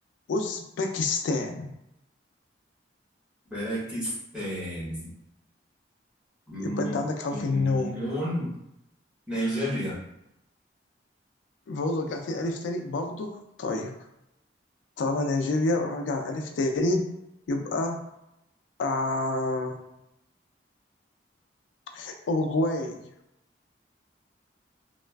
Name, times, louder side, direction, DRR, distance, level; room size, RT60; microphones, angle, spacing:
voice 1, 0.3-1.7 6.6-8.0 11.7-13.9 15.0-17.1 17.5-18.0 18.8-19.9 21.9-23.0, left 2 dB, 80° left, 4 dB, 0.3 m, -28 dB
voice 2, 3.5-5.1 6.5-6.9 7.3-8.5 9.3-10.0, equal, 5° right, -9 dB, 1.0 m, -31 dB
3.1 x 2.3 x 2.2 m, 0.85 s
head